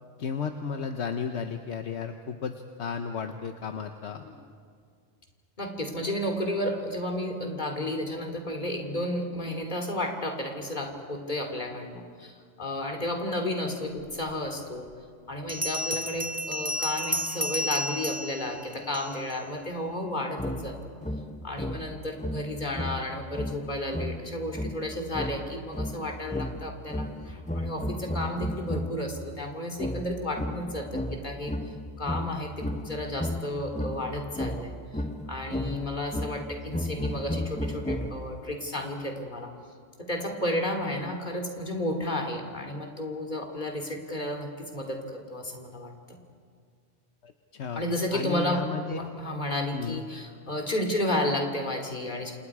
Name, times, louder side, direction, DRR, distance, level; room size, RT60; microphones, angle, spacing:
voice 1, 0.2-4.2 47.2-47.8 48.1-49.0 49.7-50.1, left 6 dB, 70° left, 6 dB, 1.2 m, -34 dB
voice 2, 5.6-14.9 15.3-20.8 21.4-35.0 35.3-39.5 40.0-46.2 47.8-52.3, left 1 dB, 40° left, 3 dB, 2.8 m, -32 dB
Bell, 15.5-19.4, equal, 10° right, 0.4 m, -32 dB
sound 1, 20.4-29.1 29.8-38.4, left 1 dB, 5° left, 0.9 m, -34 dB
28.0 x 27.5 x 4.9 m, 2.1 s
omnidirectional pair, 1.2 m